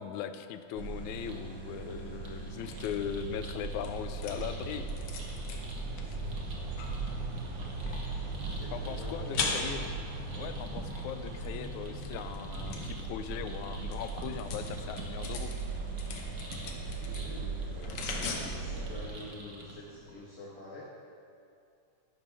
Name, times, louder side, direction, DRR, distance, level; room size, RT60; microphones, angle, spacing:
voice 1, 0.0-4.9 8.7-9.8 10.4-15.5 18.2-18.4, left 9 dB, 80° left, 10 dB, 1.9 m, -39 dB
sound 1, 0.7-19.1, right 3 dB, 90° right, 2.7 m, -38 dB
sound 2, 1.3-19.7, right 2 dB, 45° right, 1.2 m, -49 dB
sound 3, 1.6-20.1, left 4 dB, 60° left, 1.7 m, -43 dB
voice 2, 8.4-9.6 16.7-20.8, left 1 dB, 45° left, -6 dB, 1.1 m, -47 dB
12.0 x 11.0 x 3.4 m, 2.4 s
omnidirectional pair, 3.4 m